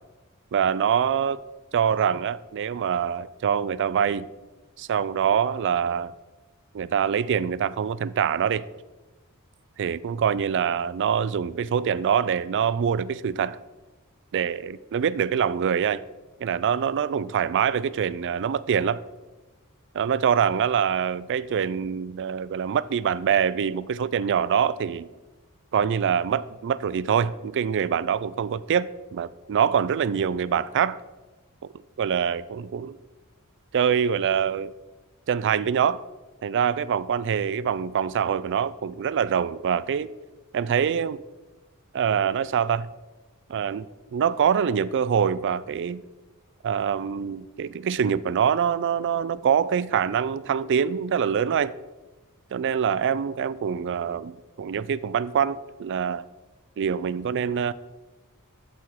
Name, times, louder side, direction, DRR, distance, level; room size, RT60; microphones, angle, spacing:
voice 1, 0.5-1.4 1.7-4.3 4.8-6.1 6.7-8.6 9.8-13.6 14.3-16.0 16.4-19.0 19.9-25.1 25.7-31.0 32.0-33.0 33.7-34.7 35.3-36.0 36.4-40.1 40.5-41.2 41.9-42.9 43.5-43.9 44.1-46.0 46.6-51.7 52.5-56.3 56.8-57.7, right 7 dB, 55° right, 0.3 m, -24 dB
8.2 x 7.5 x 4.7 m
head